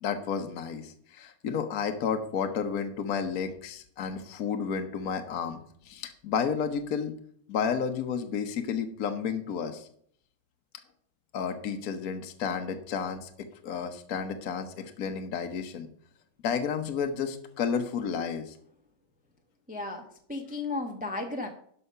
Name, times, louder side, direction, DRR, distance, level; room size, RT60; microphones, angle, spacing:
voice 1, 0.0-5.6 5.8-7.1 7.5-9.9 11.3-13.3 13.6-15.9 16.4-18.6, left 6 dB, 55° left, 6 dB, 1.2 m, -31 dB
voice 2, 19.7-21.5, left 3 dB, 5° right, 3 dB, 0.7 m, -34 dB
11.5 x 5.6 x 5.5 m, 0.63 s
omnidirectional pair, 2.2 m